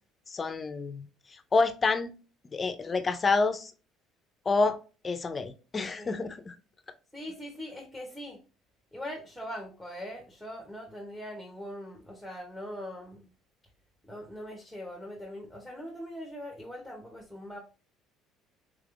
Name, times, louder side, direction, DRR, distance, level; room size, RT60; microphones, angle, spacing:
voice 1, 0.3-1.1 1.5-2.1 2.5-3.7 4.5-4.8 5.0-6.5, left 4 dB, 25° left, 0.4 m, -28 dB
voice 2, 7.1-8.4 8.9-13.2 14.0-17.6, equal, ahead, 0.7 m, -41 dB
3.4 x 3.4 x 2.4 m
cardioid pair, 115°, 0 cm